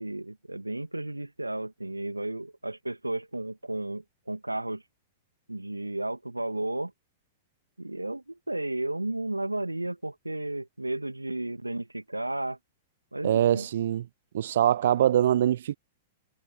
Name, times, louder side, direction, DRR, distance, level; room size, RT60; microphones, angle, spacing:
voice 1, 0.0-4.8 5.5-6.9 7.8-12.6 13.1-13.7, right 2 dB, 90° right, 2.1 m, -33 dB
voice 2, 13.2-14.0 14.3-15.8, right 11 dB, 60° right, 0.5 m, -23 dB
figure-of-eight pair, 100°, 0 cm